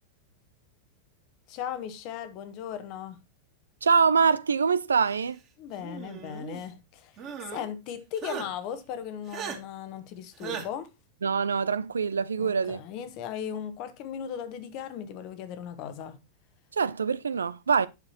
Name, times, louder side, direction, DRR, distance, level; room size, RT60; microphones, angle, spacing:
voice 1, 1.5-3.2 5.6-7.2 7.4-10.9 12.4-16.2, left 9 dB, 40° left, 1.1 m, -37 dB
voice 2, 3.8-5.4 11.2-12.8 16.7-17.9, right 5 dB, 70° right, 0.4 m, -24 dB
sound 1, 5.8-6.6 7.2-7.7 8.2-8.5 9.3-9.6 10.4-10.7, right 7 dB, 35° right, 2.1 m, -37 dB
9.2 x 6.7 x 2.8 m
figure-of-eight pair, 90°, 0 cm